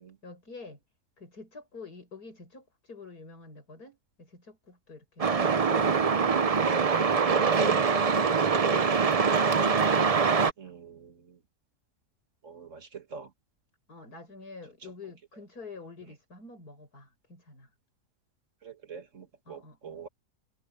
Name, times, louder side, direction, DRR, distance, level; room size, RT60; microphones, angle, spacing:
voice 1, 0.2-0.8 1.2-6.0 10.0-10.2 10.6-10.7 13.9-17.7 19.5-20.0, left 4 dB, 85° left, 7.0 m, -47 dB
Truck, 5.2-10.5, right 5 dB, 35° right, 0.6 m, -24 dB
voice 2, 5.2-5.6 7.6-7.9 10.6-11.4 12.4-13.3 18.6-20.1, right 6 dB, 55° right, 2.0 m, -45 dB
omnidirectional pair, 1.6 m